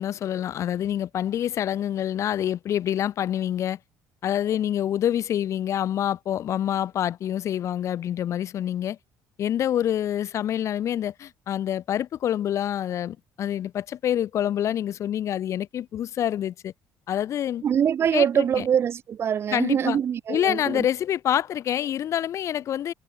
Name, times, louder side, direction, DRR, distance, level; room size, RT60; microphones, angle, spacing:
voice 1, 0.0-3.8 4.2-9.0 9.4-16.7 17.1-17.6 18.1-18.6 19.5-20.0 20.3-22.9, left 10 dB, 50° left, 4.7 m, -26 dB
voice 2, 17.6-20.9, right 8 dB, 40° right, 6.5 m, -24 dB
cardioid pair, 150°, 6 cm